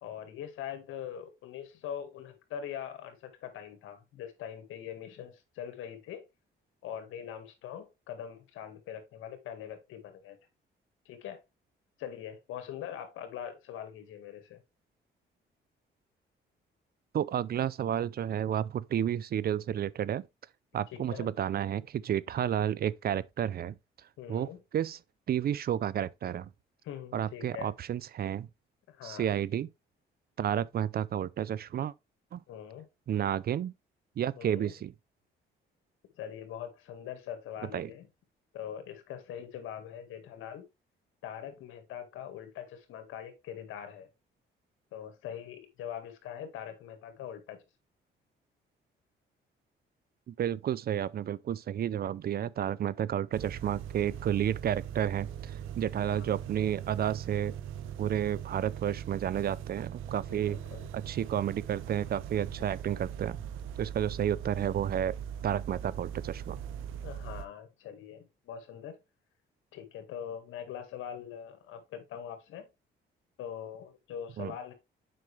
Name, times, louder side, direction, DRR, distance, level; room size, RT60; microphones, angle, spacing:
voice 1, 0.0-6.2 6.8-10.4 11.1-11.4 12.0-14.6 20.9-21.3 24.2-24.6 26.8-27.7 28.9-29.3 32.5-32.9 34.3-34.7 36.2-38.1 38.5-40.6 41.2-44.1 44.9-47.6 56.1-56.4 60.3-60.9 62.5-62.6 67.0-69.0 69.7-72.7 73.4-74.7, left 9 dB, 85° left, 1.9 m, -42 dB
voice 2, 17.1-20.3 20.7-23.8 24.3-25.0 25.3-26.5 27.1-28.5 29.0-29.7 30.4-31.9 32.3-32.4 33.1-33.7 34.2-34.9 37.7-37.9 50.3-57.5 58.0-60.6 60.9-63.4 63.8-65.2 65.4-66.6 74.4-74.5, right 10 dB, 50° right, 0.5 m, -31 dB
sound 1, 53.3-67.5, right 9 dB, 85° right, 0.8 m, -40 dB
7.7 x 5.4 x 3.3 m
cardioid pair, 90°, 20 cm